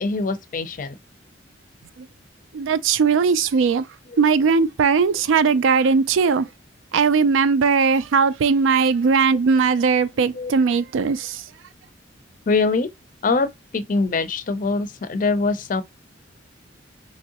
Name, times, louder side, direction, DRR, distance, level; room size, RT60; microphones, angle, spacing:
voice 1, 0.0-1.0 4.1-4.2 10.3-10.5 12.5-12.9 13.2-15.8, left 3 dB, 45° left, 0.4 m, -23 dB
voice 2, 2.5-3.8 4.2-6.5 6.9-11.4, right 5 dB, 80° right, 0.3 m, -19 dB
3.6 x 3.0 x 2.8 m
head